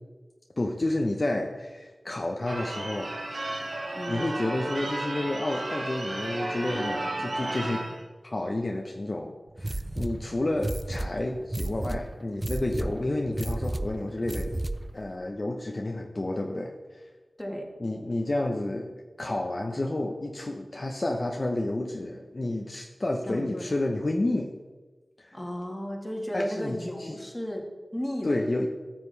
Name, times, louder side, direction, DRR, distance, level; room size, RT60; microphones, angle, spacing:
voice 1, 0.6-3.2 4.1-7.9 8.2-14.5 14.9-17.0 17.8-24.5 25.2-25.4 26.3-27.2 28.2-28.7, left 2 dB, 45° left, 2 dB, 0.7 m, -30 dB
Church bell / Car / Alarm, 2.5-8.0, right 2 dB, 70° right, 1.4 m, -33 dB
sound 1, 9.6-15.0, right 1 dB, 25° right, 0.4 m, -33 dB
voice 2, 23.3-23.7 25.3-28.4, equal, 15° left, 1 dB, 1.6 m, -34 dB
13.5 x 7.4 x 3.3 m, 1.3 s
wide cardioid pair, 80°, 0 cm